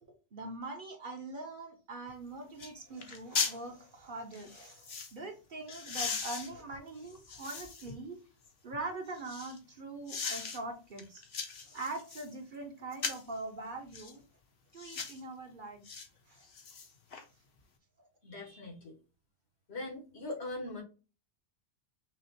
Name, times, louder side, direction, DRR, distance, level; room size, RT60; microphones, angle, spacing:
voice 1, 0.1-8.2 8.6-11.2 11.6-14.2 14.7-15.8 16.3-16.5 18.0-18.1, right 2 dB, 50° right, 2 dB, 1.2 m, -43 dB
sound 1, 2.1-2.2 2.6-2.7 3.0-3.6 4.3-5.1 5.7-8.0 8.4-9.6 10.1-10.6 11.0-12.3 12.9-13.3 13.9-14.1 14.8-15.2 15.8-16.1 16.4-17.2 17.6-17.7, left 5 dB, 60° left, 1.1 m, -38 dB
voice 2, 18.2-19.0 19.7-20.8, left 2 dB, 80° left, 1 dB, 1.9 m, -41 dB
5.9 x 2.4 x 2.9 m, 0.33 s
omnidirectional pair, 1.1 m